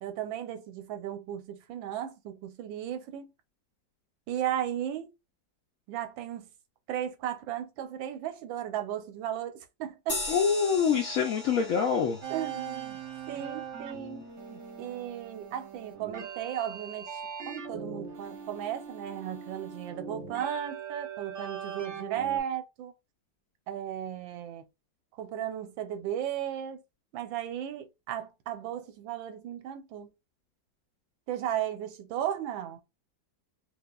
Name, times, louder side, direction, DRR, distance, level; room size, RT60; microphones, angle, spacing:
voice 1, 0.0-3.3 4.3-5.1 5.9-6.5 6.9-10.2 12.3-13.0 13.3-22.9 23.7-24.6 25.1-26.8 27.1-30.1 31.3-32.8, right 10 dB, 90° right, 1.4 m, -35 dB
sound 1, 10.1-15.0, left 2 dB, 30° left, 1.4 m, -40 dB
voice 2, 10.3-12.2, left 6 dB, 70° left, 0.8 m, -25 dB
sound 2, 12.2-22.4, right 7 dB, 50° right, 0.9 m, -41 dB
4.7 x 2.3 x 2.3 m
omnidirectional pair, 2.0 m